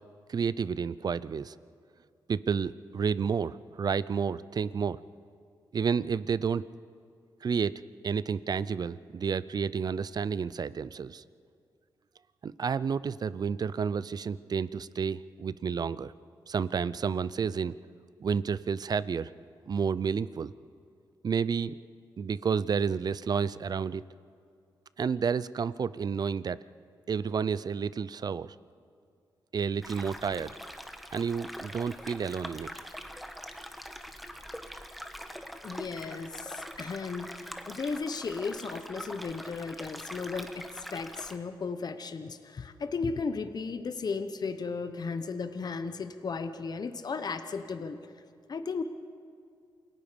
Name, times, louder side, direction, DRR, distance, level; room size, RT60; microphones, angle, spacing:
voice 1, 0.3-1.5 2.3-5.0 5.7-6.6 7.4-11.2 12.4-16.1 16.5-17.8 18.2-19.3 19.7-20.5 21.2-21.8 22.2-24.0 25.0-26.6 27.1-28.5 29.5-30.5 31.1-32.7, right 6 dB, 50° right, 18 dB, 0.5 m, -30 dB
sound 1, 29.8-41.4, equal, ahead, 1.3 m, -43 dB
voice 2, 35.6-48.0 48.5-48.8, left 4 dB, 50° left, 9 dB, 1.1 m, -35 dB
28.5 x 18.5 x 5.2 m, 2.3 s
cardioid pair, 75°, 9 cm